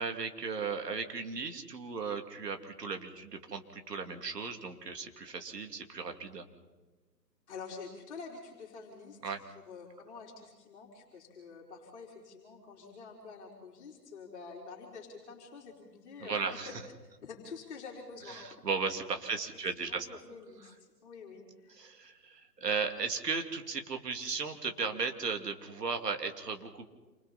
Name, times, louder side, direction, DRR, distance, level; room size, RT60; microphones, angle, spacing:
voice 1, 0.0-6.5 9.2-9.4 16.2-16.8 18.3-20.1 20.6-20.7 21.7-26.9, right 5 dB, 70° right, 6 dB, 2.9 m, -36 dB
voice 2, 7.5-9.3 9.7-16.4 17.2-18.5 19.8-20.7 21.0-22.0, left 4 dB, 40° left, -1 dB, 4.3 m, -47 dB
28.0 x 27.0 x 4.3 m, 1.3 s
figure-of-eight pair, 145°, 50 cm